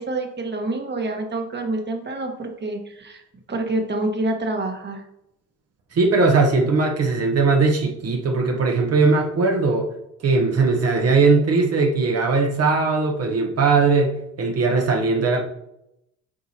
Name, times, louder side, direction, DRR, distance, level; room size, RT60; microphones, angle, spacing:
voice 1, 0.0-3.2 3.5-5.0, right 2 dB, 35° right, 3 dB, 1.4 m, -27 dB
voice 2, 5.9-9.9 10.2-15.4, right 4 dB, 50° right, 2 dB, 1.1 m, -19 dB
8.6 x 4.7 x 2.8 m, 0.83 s
cardioid pair, 95°, 32 cm